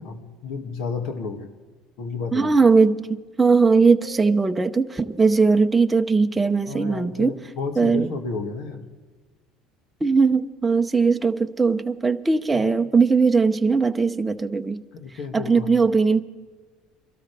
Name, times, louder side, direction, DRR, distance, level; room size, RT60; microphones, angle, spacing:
voice 1, 0.0-1.5 2.0-2.5 6.7-8.9 12.5-12.7 14.9-15.7, left 4 dB, 65° left, 2.1 m, -32 dB
voice 2, 2.3-7.3 7.8-8.1 10.0-14.8 15.3-16.2, right 4 dB, 15° right, 0.7 m, -19 dB
Keyboard (musical), 4.0-6.8, left 3 dB, 35° left, 2.1 m, -47 dB
24.0 x 13.0 x 3.4 m
supercardioid pair, 110°, 0 cm